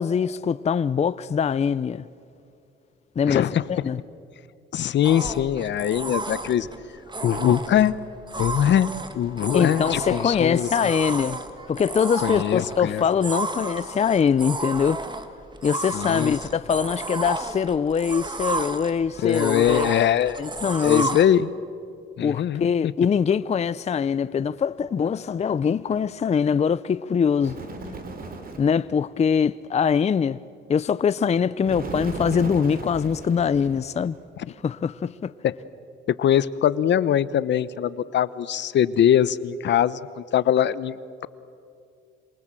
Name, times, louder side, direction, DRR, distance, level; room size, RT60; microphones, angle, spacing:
voice 1, 0.0-2.0 3.2-4.0 6.1-6.2 9.5-11.4 11.7-15.0 15.6-19.9 20.4-21.2 22.2-27.6 28.6-30.4 30.7-34.2 34.6-35.3, left 7 dB, 35° left, 0.5 m, -23 dB
voice 2, 3.3-3.6 4.7-6.7 7.2-8.0 8.3-10.7 12.2-13.0 15.9-16.4 19.2-20.4 20.8-21.5 22.2-22.9 35.4-35.5 36.1-41.3, left 10 dB, 65° left, 0.9 m, -22 dB
sound 1, 5.0-21.2, right 3 dB, 20° right, 1.9 m, -32 dB
Bird, 27.4-28.8 31.7-34.2, right 3 dB, 50° right, 3.4 m, -35 dB
27.5 x 27.0 x 7.6 m
cardioid pair, 90°, 20 cm